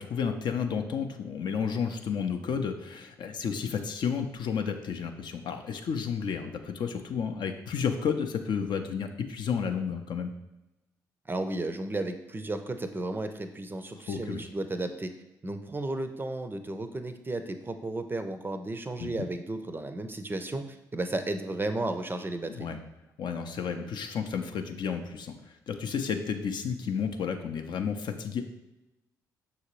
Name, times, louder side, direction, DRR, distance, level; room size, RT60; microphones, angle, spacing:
voice 1, 0.0-10.3 14.1-14.5 19.0-19.1 22.5-22.8 23.2-28.4, left 6 dB, 55° left, 6 dB, 0.5 m, -32 dB
voice 2, 11.3-15.1 15.4-22.7, right 2 dB, 25° right, 8 dB, 0.5 m, -33 dB
5.8 x 2.7 x 3.0 m, 0.95 s
hypercardioid pair, 45°, 9 cm